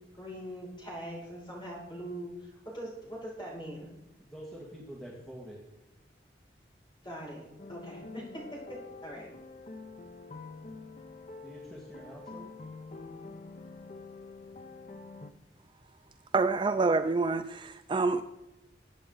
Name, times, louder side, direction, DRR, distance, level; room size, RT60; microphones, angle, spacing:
voice 1, 0.1-3.9 7.0-9.3, equal, 25° left, 6.3 m, -42 dB
voice 2, 4.2-5.6 11.4-12.5, right 1 dB, 5° left, 2.0 m, -46 dB
sound 1, 7.6-15.3, left 3 dB, 40° left, 0.8 m, -46 dB
voice 3, 16.3-18.2, right 3 dB, 30° right, 0.4 m, -27 dB
22.0 x 8.9 x 3.9 m
head